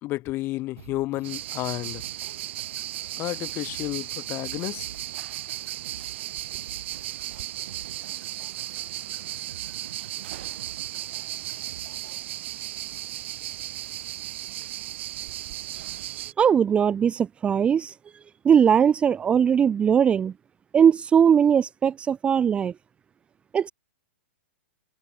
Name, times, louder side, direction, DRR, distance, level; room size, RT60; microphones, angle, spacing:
voice 1, 0.0-2.0 3.2-4.9, left 18 dB, 30° left, 2.6 m, -31 dB
sound 1, 0.8-12.2, right 9 dB, 75° right, 5.9 m, -48 dB
sound 2, 1.2-16.3, right 14 dB, 60° right, 3.2 m, -35 dB
voice 2, 16.4-17.9 18.4-20.3 20.7-22.7 23.5-23.7, right 8 dB, 15° right, 0.6 m, -20 dB
hypercardioid pair, 140°, 7 cm